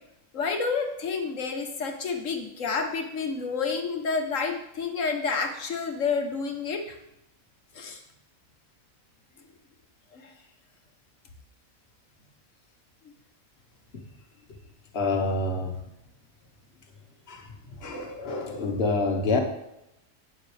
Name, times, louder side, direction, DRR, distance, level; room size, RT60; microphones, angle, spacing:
voice 1, 0.3-7.0 7.7-8.0 10.1-10.3, left 4 dB, 65° left, 4 dB, 1.5 m, -29 dB
voice 2, 14.9-15.8 17.3-17.4 17.8-19.4, left 3 dB, 50° left, 3 dB, 1.5 m, -27 dB
11.5 x 8.8 x 3.4 m, 0.85 s
omnidirectional pair, 1.5 m